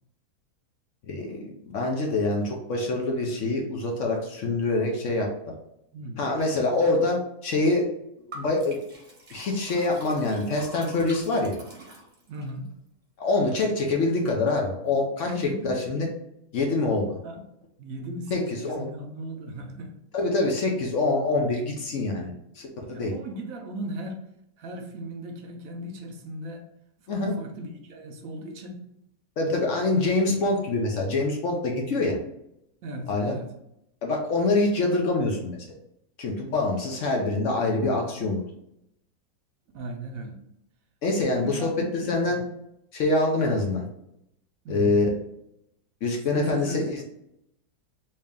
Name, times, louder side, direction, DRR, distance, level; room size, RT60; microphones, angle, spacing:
voice 1, 1.1-5.3 6.2-7.9 8.3-8.8 9.3-11.6 13.2-15.3 15.6-16.1 16.5-17.1 18.3-18.9 20.1-23.1 27.1-27.3 29.4-32.2 33.1-33.3 34.0-35.6 36.2-38.4 41.0-42.4 42.9-43.8 44.7-45.0 46.0-47.0, left 2 dB, 65° left, 1 dB, 0.9 m, -25 dB
voice 2, 5.9-6.3 12.3-12.7 15.3-15.8 17.2-17.4 17.8-19.9 22.1-22.4 22.9-24.2 24.6-26.7 27.0-28.8 32.8-33.5 39.7-40.4 41.4-42.4 44.6-45.0 46.3-47.0, right 1 dB, 70° right, 4 dB, 0.9 m, -37 dB
Liquid, 8.3-12.5, right 1 dB, 40° right, 0.8 m, -45 dB
3.3 x 2.8 x 3.5 m, 0.80 s
omnidirectional pair, 1.6 m